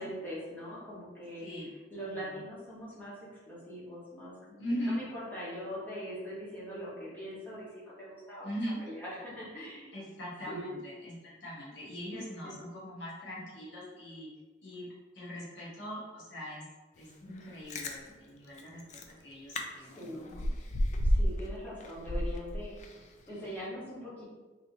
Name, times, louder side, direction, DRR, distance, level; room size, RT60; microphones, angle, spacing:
voice 1, 0.0-1.5 1.9-3.1 3.5-8.5 8.8-9.9 10.5-10.7 12.1-12.5 19.8-20.3 21.0-24.2, equal, 10° left, -9 dB, 1.2 m, -42 dB
voice 2, 4.6-5.0 8.4-8.8 9.9-14.3 14.6-14.9 15.1-16.6 17.0-18.8 19.1-20.2, equal, 80° left, -6 dB, 1.2 m, -40 dB
Chewing mastication, 17.4-17.9 18.6-18.7 18.9-19.1 19.5-19.6 20.0-21.5 21.8-23.0 23.4-23.5, equal, 40° left, 0.3 m, -30 dB
3.1 x 2.8 x 2.7 m, 1.3 s
head